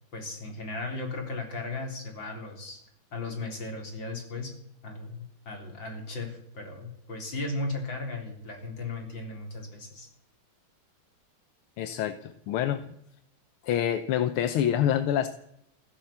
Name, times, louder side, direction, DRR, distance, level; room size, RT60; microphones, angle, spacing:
voice 1, 0.1-2.8 3.1-4.5 4.8-10.1, left 2 dB, 60° left, 3 dB, 4.4 m, -36 dB
voice 2, 11.8-12.8 13.6-15.3, left 10 dB, 85° left, 11 dB, 1.7 m, -26 dB
16.0 x 11.5 x 7.2 m, 0.75 s
omnidirectional pair, 2.3 m